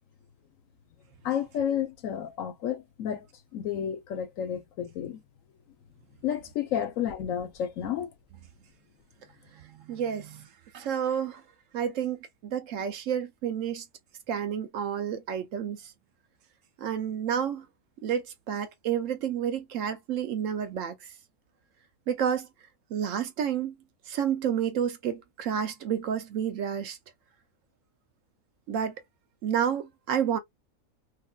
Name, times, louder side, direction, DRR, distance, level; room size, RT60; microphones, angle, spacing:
voice 1, 1.2-3.3 3.5-5.2 6.2-8.1, left 9 dB, 65° left, 1.1 m, -31 dB
voice 2, 9.5-10.5 10.7-11.4 11.7-13.8 14.3-15.9 16.8-17.7 18.0-21.1 22.1-22.5 22.9-23.8 24.1-27.0 28.7-28.9 29.4-30.4, right 8 dB, 70° right, 0.9 m, -30 dB
3.1 x 2.5 x 2.2 m
omnidirectional pair, 1.6 m